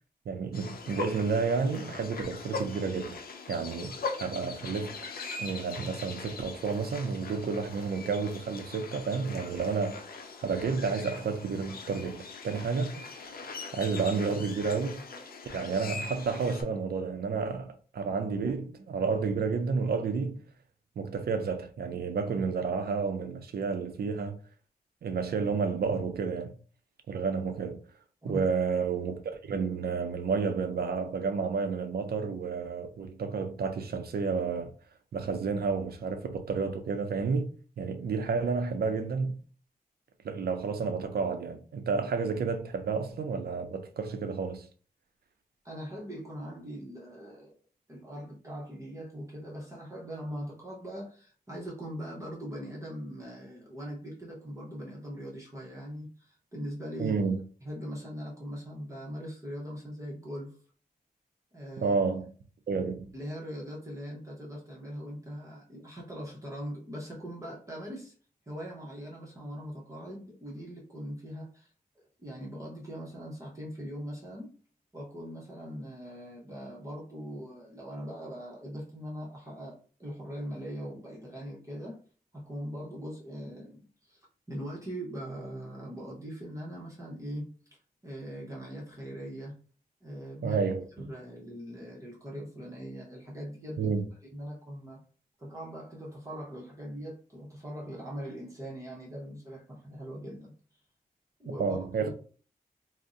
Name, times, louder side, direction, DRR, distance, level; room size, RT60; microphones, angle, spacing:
voice 1, 0.3-3.2 3.5-5.0 5.4-10.0 10.4-13.5 13.7-15.0 15.5-20.4 21.0-24.4 25.0-26.5 27.1-27.8 28.2-34.7 35.1-37.5 37.8-39.4 40.2-44.6 57.0-57.4 61.8-62.3 62.7-63.0 90.4-91.1 93.8-94.0 101.6-102.1, right 5 dB, 85° right, 0.5 m, -31 dB
sound 1, 0.5-16.6, left 4 dB, 75° left, 0.5 m, -41 dB
voice 2, 45.6-47.5 47.9-57.2 57.6-60.6 61.5-62.0 63.1-68.1 68.5-74.5 74.9-82.0 82.3-87.5 88.0-89.6 90.0-90.6 91.0-94.0 94.3-95.0 95.4-100.5 101.4-102.1, equal, 20° right, 0.8 m, -41 dB
2.6 x 2.1 x 3.6 m
wide cardioid pair, 130°, 16 cm